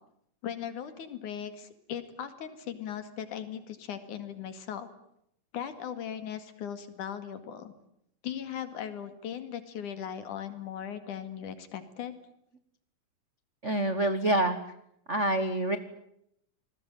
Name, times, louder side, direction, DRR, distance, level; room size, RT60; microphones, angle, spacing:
voice 1, 0.4-4.9 5.5-7.7 8.2-12.2, left 9 dB, 75° left, 10 dB, 3.6 m, -38 dB
voice 2, 13.6-14.6 15.1-15.8, right 1 dB, 50° right, 10 dB, 0.8 m, -26 dB
27.5 x 20.5 x 9.1 m, 0.75 s
omnidirectional pair, 3.6 m